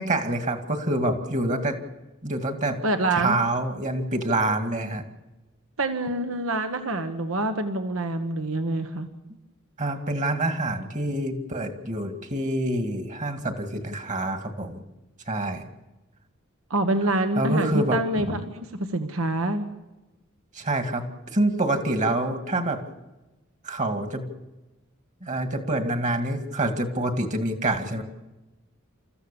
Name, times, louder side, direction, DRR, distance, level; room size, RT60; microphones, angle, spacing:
voice 1, 0.0-1.8 2.2-2.8 3.1-5.0 9.8-14.8 15.3-15.6 17.4-18.0 18.2-18.4 20.5-22.8 23.6-24.3 25.2-28.0, right 1 dB, 35° right, 6 dB, 2.2 m, -26 dB
voice 2, 2.8-3.4 5.8-9.1 16.7-18.7 18.9-19.7, right 2 dB, 75° right, 8 dB, 1.3 m, -26 dB
29.0 x 14.5 x 7.0 m, 1.0 s
head